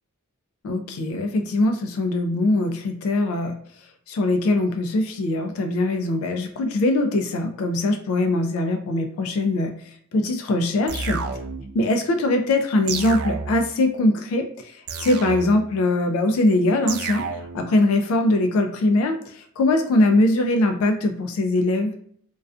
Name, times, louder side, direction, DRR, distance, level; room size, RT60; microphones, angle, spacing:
voice 1, 0.6-3.5 4.1-9.7 10.1-11.2 11.7-17.3 17.5-21.9, left 2 dB, 65° left, 7 dB, 0.3 m, -22 dB
sound 1, 10.9-11.8 12.9-13.8 14.9-15.8 16.9-17.8, right 4 dB, 75° right, 0.3 m, -30 dB
2.4 x 2.2 x 2.3 m, 0.62 s
head